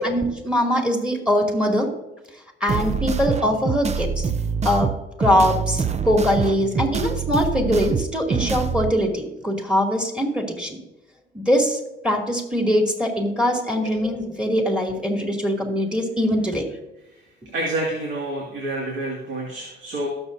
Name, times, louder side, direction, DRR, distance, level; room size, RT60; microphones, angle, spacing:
voice 1, 0.0-1.9 2.6-4.3 4.6-4.9 5.2-10.8 11.3-11.8 12.0-16.6, equal, 5° right, 1 dB, 2.8 m, -22 dB
sound 1, 2.7-8.9, right 5 dB, 35° right, 0.6 m, -25 dB
voice 2, 17.5-20.1, right 1 dB, 70° right, -2 dB, 2.3 m, -28 dB
18.5 x 7.1 x 2.8 m, 0.98 s
cardioid pair, 90°, 20 cm